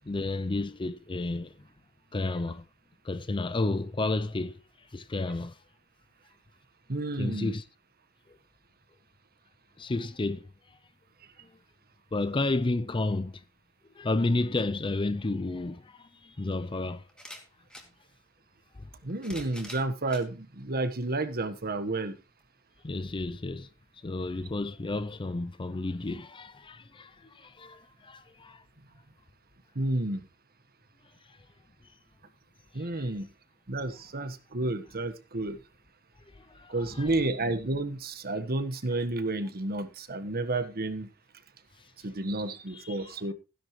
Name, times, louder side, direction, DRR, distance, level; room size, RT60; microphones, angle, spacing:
voice 1, 0.1-1.7 2.1-2.6 3.0-4.6 4.9-5.6 7.2-7.6 9.8-10.5 11.4-11.5 12.1-13.4 14.0-17.0 18.8-18.9 22.8-23.7 24.0-28.6 31.3-31.4 32.8-33.1 36.3-37.1 42.7-43.1, left 2 dB, 20° left, 0.5 m, -32 dB
voice 2, 6.9-7.5 19.0-22.2 29.7-30.2 32.7-33.3 33.7-35.6 36.7-41.1 42.0-43.3, right 2 dB, 45° right, 1.3 m, -31 dB
sound 1, 15.7-15.8 17.1-17.9 18.9-20.3 21.0-21.1 22.4-22.5, left 1 dB, 5° left, 2.5 m, -46 dB
15.5 x 10.5 x 3.1 m
head